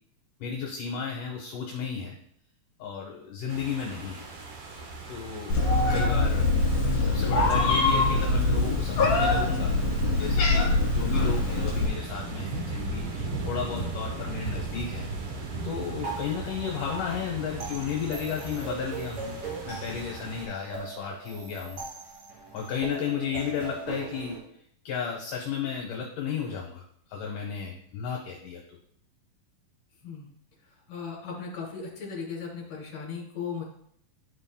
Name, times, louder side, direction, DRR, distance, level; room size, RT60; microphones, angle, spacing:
voice 1, 0.4-2.2 2.8-4.3 5.1-5.6 5.9-6.5 7.0-9.8 10.1-15.3 15.6-19.4 19.7-21.8 22.5-24.4 24.9-26.8 27.1-28.8, left 7 dB, 70° left, 0 dB, 2.2 m, -33 dB
sound 1, 3.5-20.5, right 3 dB, 70° right, 1.4 m, -38 dB
Meow, 5.5-11.9, left 2 dB, 55° left, 2.4 m, -23 dB
sound 2, 16.0-24.4, right 4 dB, 30° right, 2.2 m, -40 dB
voice 2, 30.9-33.6, left 5 dB, 35° left, -3 dB, 2.8 m, -37 dB
11.5 x 5.3 x 2.2 m, 0.66 s
omnidirectional pair, 4.1 m